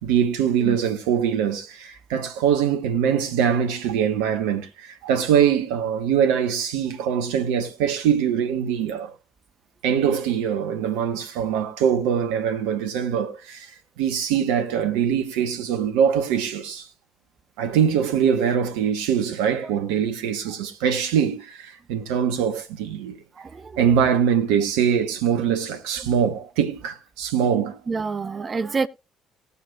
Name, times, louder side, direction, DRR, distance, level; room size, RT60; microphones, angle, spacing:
voice 1, 0.0-9.1 9.8-16.9 17.6-23.2 23.8-27.8, right 8 dB, 70° right, 1.0 m, -23 dB
voice 2, 23.4-23.8 27.9-28.9, right 4 dB, 30° right, 0.6 m, -27 dB
19.0 x 6.9 x 2.3 m
figure-of-eight pair, 50°, 0 cm